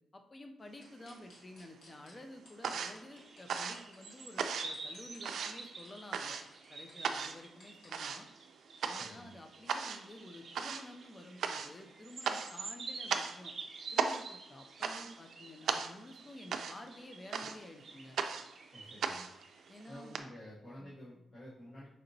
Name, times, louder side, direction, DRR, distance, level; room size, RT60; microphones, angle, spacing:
voice 1, 0.1-6.4 6.7-8.3 8.8-13.5 13.9-18.2 19.7-20.2 20.8-20.9, left 1 dB, 25° left, 5 dB, 0.3 m, -51 dB
sound 1, 0.8-2.1 2.4-4.1 4.5-7.9, left 2 dB, 75° left, 1.4 m, -60 dB
sound 2, 0.8-1.6 1.9-20.2, right 6 dB, 75° right, 0.3 m, -38 dB
sound 3, 3.1-19.8, right 3 dB, 45° right, 0.7 m, -49 dB
voice 2, 9.0-9.3 18.7-19.3 19.9-21.9, equal, 40° left, -9 dB, 1.0 m, -51 dB
5.0 x 2.8 x 2.6 m, 0.82 s
wide cardioid pair, 165°, 0 cm